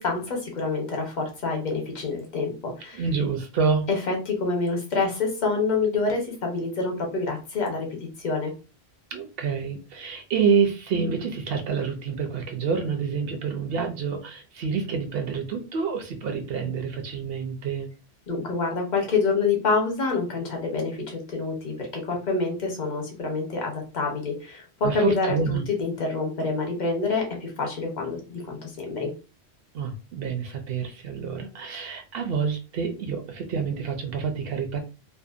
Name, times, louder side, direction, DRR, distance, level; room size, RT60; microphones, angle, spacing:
voice 1, 0.0-3.0 3.9-7.9 8.2-8.5 18.3-29.1, left 4 dB, 50° left, 1 dB, 0.9 m, -27 dB
voice 2, 2.9-3.9 9.1-17.9 24.8-25.6 29.7-34.8, right 6 dB, 65° right, 4 dB, 0.7 m, -27 dB
2.7 x 2.1 x 2.4 m, 0.33 s
omnidirectional pair, 1.1 m